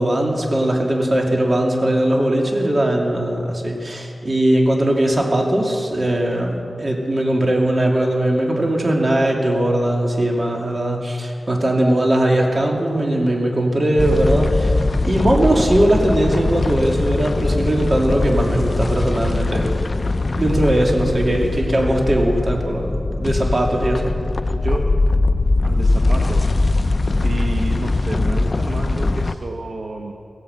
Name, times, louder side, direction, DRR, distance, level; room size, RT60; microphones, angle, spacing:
voice 1, 0.0-14.7 15.0-19.7 20.4-24.1, right 1 dB, 40° right, 0 dB, 2.5 m, -19 dB
sound 1, 14.0-29.4, left 2 dB, 45° left, 0.5 m, -21 dB
voice 2, 24.5-24.9 25.6-26.5 27.2-30.1, right 2 dB, 70° right, 2 dB, 0.9 m, -30 dB
16.0 x 9.5 x 7.9 m, 2.6 s
wide cardioid pair, 65°, 0 cm